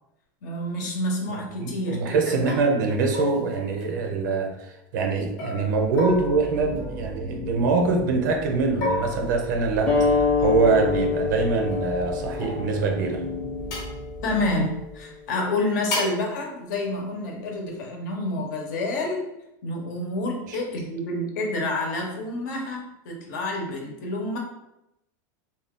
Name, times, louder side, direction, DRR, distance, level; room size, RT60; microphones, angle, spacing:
voice 1, 0.4-2.3 14.2-19.3 19.6-24.4, left 2 dB, 70° left, 1 dB, 0.8 m, -28 dB
voice 2, 1.3-13.2, right 4 dB, 75° right, 3 dB, 0.7 m, -24 dB
sound 1, 1.8-2.0 2.5-2.7 3.1-4.5 5.4-7.6 8.8-10.2 11.7-13.0 13.7-14.0 15.9-16.3, left 2 dB, 40° left, 0.9 m, -33 dB
sound 2, 6.0-15.0, right 1 dB, 25° right, 0.3 m, -38 dB
sound 3, 9.9-15.0, left 5 dB, 10° left, 0.6 m, -26 dB
2.7 x 2.3 x 3.5 m, 0.87 s
supercardioid pair, 165°, 10 cm